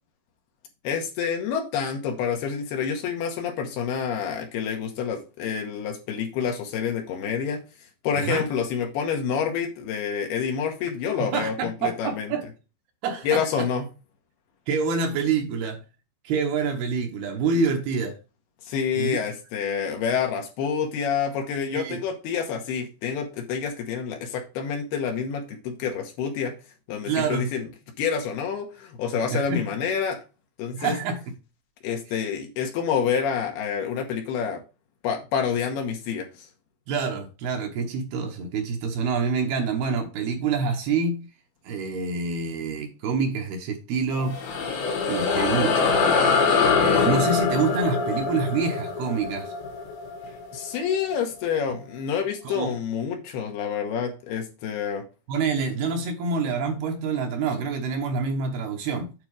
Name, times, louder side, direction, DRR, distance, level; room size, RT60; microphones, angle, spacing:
voice 1, 0.8-7.6 8.0-12.3 13.2-13.9 18.7-26.5 26.9-27.7 28.0-30.2 30.6-30.9 31.8-34.6 35.0-36.5 50.5-55.0, left 7 dB, 70° left, 2.9 m, -28 dB
voice 2, 8.1-8.5 11.2-12.5 13.0-13.7 14.7-15.8 16.2-18.2 18.9-19.2 21.7-22.0 27.0-27.5 29.3-29.7 30.7-31.3 36.9-41.3 41.6-44.4 45.1-46.0 46.8-49.5 52.4-52.8 55.3-59.1, right 4 dB, 70° right, 2.8 m, -27 dB
sound 1, 44.1-50.9, left 5 dB, 85° left, 4.1 m, -23 dB
9.2 x 4.3 x 4.8 m
omnidirectional pair, 5.1 m